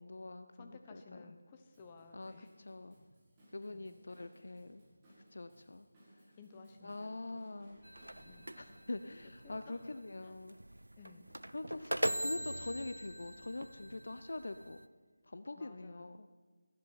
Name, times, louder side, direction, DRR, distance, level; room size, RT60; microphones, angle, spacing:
voice 1, 0.0-1.3 2.1-3.0 3.5-4.8 5.3-5.9 6.1-6.2 6.8-7.8 8.6-10.6 11.5-11.9 12.2-14.8 15.2-16.3, left 2 dB, 60° left, 10 dB, 0.7 m, -44 dB
voice 2, 0.5-2.5 3.7-3.9 6.4-7.4 8.2-8.5 9.4-9.8 10.2-10.3 11.0-11.3 11.9-12.4 15.6-16.1, left 4 dB, 20° left, 5 dB, 1.1 m, -56 dB
Drum kit / Drum, 1.7-9.2, equal, 20° right, 5.3 m, -63 dB
sound 1, 7.6-14.4, right 1 dB, 60° right, 5.8 m, -59 dB
sound 2, 7.8-14.9, right 1 dB, 85° right, 0.6 m, -41 dB
17.5 x 14.0 x 4.2 m, 1.4 s
figure-of-eight pair, 160°, 0 cm